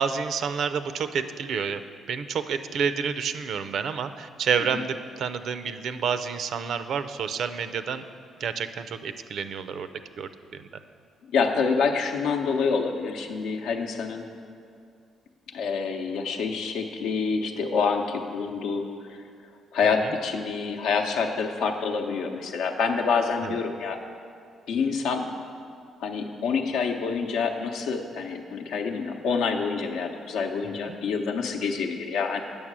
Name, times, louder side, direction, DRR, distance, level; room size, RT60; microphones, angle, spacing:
voice 1, 0.0-1.8 2.1-8.0 8.4-9.9 10.2-10.6 23.4-23.6 30.6-30.8, right 6 dB, 70° right, 10 dB, 0.5 m, -29 dB
voice 2, 11.3-14.3 15.5-19.2 19.7-24.0 24.7-25.3 26.0-32.4, left 5 dB, 85° left, 4 dB, 0.8 m, -27 dB
8.7 x 6.5 x 6.1 m, 2.4 s
cardioid pair, 90°, 0 cm